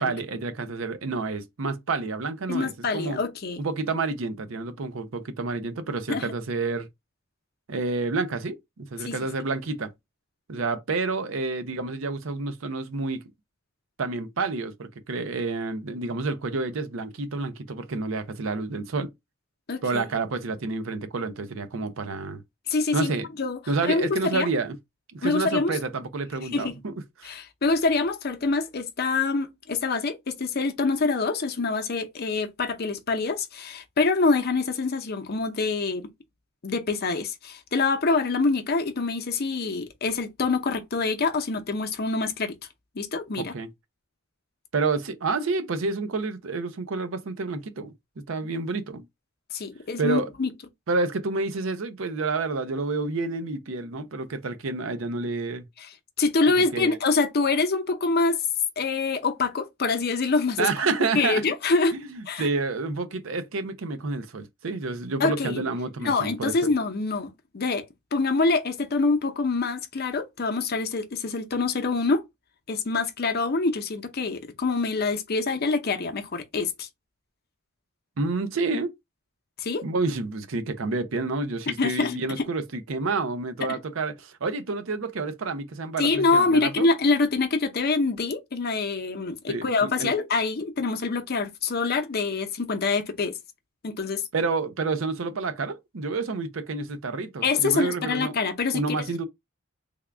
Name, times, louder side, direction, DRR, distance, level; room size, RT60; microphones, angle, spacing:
voice 1, 0.0-3.2 3.6-6.9 7.7-9.9 10.5-13.2 14.0-19.1 19.8-22.4 22.9-23.2 23.7-24.7 25.1-27.3 43.4-43.7 44.7-49.0 50.0-50.3 50.9-55.6 56.5-57.0 60.6-61.4 61.9-66.7 78.2-78.9 79.8-86.9 89.5-90.1 94.3-98.4 98.7-99.2, right 3 dB, 70° right, 0.6 m, -29 dB
voice 2, 2.5-3.6 6.1-6.3 9.0-9.1 19.7-20.0 22.7-23.1 23.4-24.5 25.2-25.8 26.5-26.7 27.2-36.1 36.6-42.6 43.0-43.5 49.5-50.5 56.2-58.4 58.8-60.7 61.1-61.9 62.3-62.5 65.2-65.6 66.0-67.8 68.1-72.2 72.7-76.9 79.6-79.8 81.8-82.2 83.7-83.8 86.0-93.3 93.8-94.2 97.4-99.0, left 3 dB, 50° left, 0.6 m, -25 dB
3.5 x 2.3 x 3.4 m
head